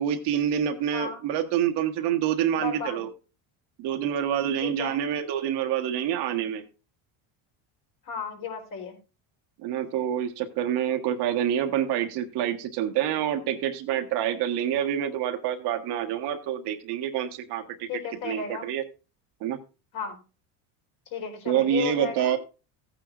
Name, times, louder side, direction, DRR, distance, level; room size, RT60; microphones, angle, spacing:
voice 1, 0.0-3.1 3.8-6.6 9.6-17.9 18.2-18.8 19.4-19.6 21.5-22.4, right 10 dB, 60° right, 6 dB, 1.5 m, -27 dB
voice 2, 2.5-3.0 4.6-5.0 8.0-9.0 17.9-18.7 19.9-20.2 21.1-22.4, left 6 dB, 45° left, 2 dB, 4.0 m, -34 dB
14.5 x 9.2 x 2.5 m, 0.31 s
cardioid pair, 130°, 45 cm